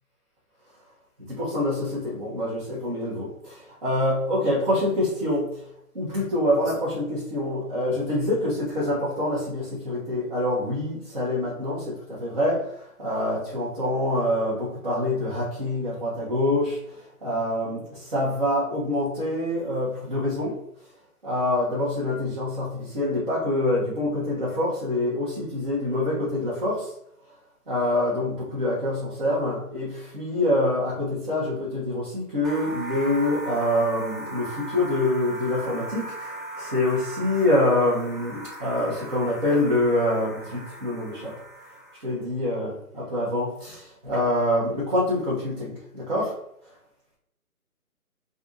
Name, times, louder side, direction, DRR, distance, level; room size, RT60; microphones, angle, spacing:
voice 1, 1.3-5.6 5.9-20.5 21.2-26.9 27.7-41.3 42.0-46.3, left 1 dB, 35° right, -9 dB, 1.0 m, -26 dB
sound 1, 32.4-42.2, right 2 dB, ahead, 0.3 m, -38 dB
2.5 x 2.5 x 3.9 m, 0.73 s
hypercardioid pair, 165°, 46 cm